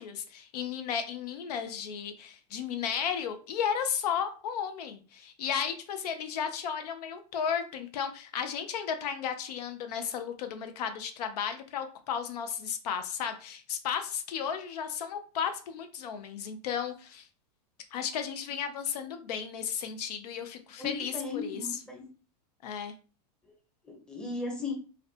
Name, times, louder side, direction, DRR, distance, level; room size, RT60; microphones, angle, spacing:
voice 1, 0.0-17.3 17.9-21.8 22.6-22.9, left 7 dB, 75° left, 8 dB, 0.5 m, -34 dB
voice 2, 20.8-22.1 23.8-24.7, left 3 dB, 5° left, 0 dB, 0.7 m, -36 dB
2.5 x 2.1 x 2.5 m, 0.37 s
supercardioid pair, 130°, 20 cm